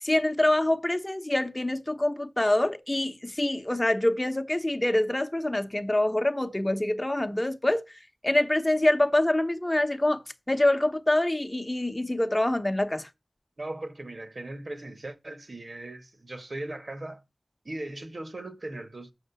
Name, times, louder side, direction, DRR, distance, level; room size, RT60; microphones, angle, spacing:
voice 1, 0.0-7.8 8.2-10.2 10.5-13.1, left 1 dB, 25° left, 0.9 m, -25 dB
voice 2, 13.6-17.2 17.6-19.1, right 2 dB, 60° right, 1.4 m, -38 dB
7.9 x 6.5 x 6.8 m
wide cardioid pair, 55°, 0 cm